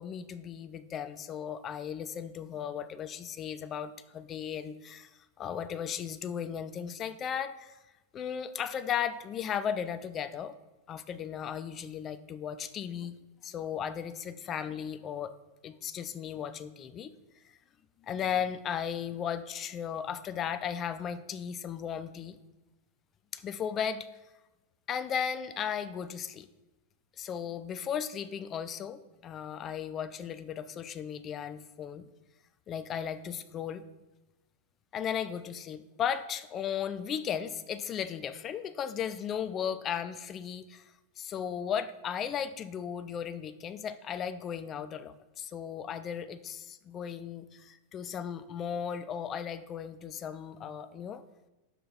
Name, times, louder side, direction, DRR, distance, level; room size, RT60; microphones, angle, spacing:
voice 1, 0.0-5.1 5.4-7.8 8.1-10.5 10.9-13.1 13.4-15.3 15.6-17.1 18.0-22.4 23.3-24.1 24.9-26.5 27.2-32.0 32.7-33.8 34.9-40.8 41.2-51.2, left 8 dB, 30° left, 11 dB, 0.4 m, -36 dB
5.6 x 5.4 x 4.2 m, 1.0 s
figure-of-eight pair, 90°, 0 cm